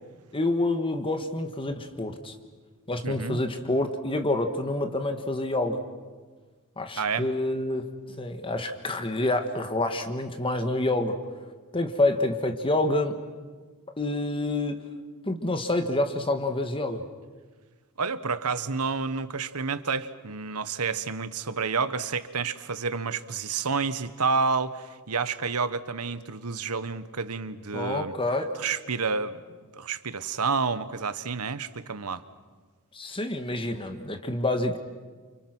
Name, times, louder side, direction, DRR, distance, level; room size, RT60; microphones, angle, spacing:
voice 1, 0.3-2.3 2.9-5.8 6.8-11.2 11.7-13.1 14.0-14.9 15.2-17.0 27.7-28.5 32.9-34.8, left 2 dB, 25° left, 7 dB, 1.7 m, -27 dB
voice 2, 3.0-3.4 7.0-7.3 18.0-28.1 28.6-29.4 29.7-32.2, right 5 dB, 85° right, 14 dB, 1.3 m, -29 dB
30.0 x 29.0 x 6.2 m, 1.4 s
head